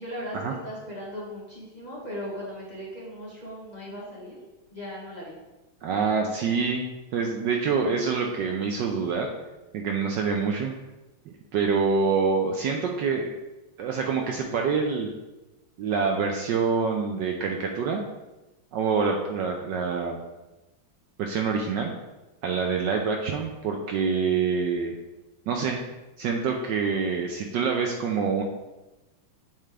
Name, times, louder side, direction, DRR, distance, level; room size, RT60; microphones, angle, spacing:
voice 1, 0.0-4.4 4.7-5.4, equal, 20° left, -6 dB, 1.4 m, -38 dB
voice 2, 5.8-6.9 7.1-9.3 9.7-10.7 11.5-13.3 13.8-15.1 15.8-18.0 18.7-20.2 21.2-21.9 22.4-24.9 25.5-25.8 26.2-28.4, right 5 dB, 75° right, 2 dB, 1.1 m, -26 dB
7.4 x 4.3 x 3.4 m, 1.1 s
omnidirectional pair, 2.3 m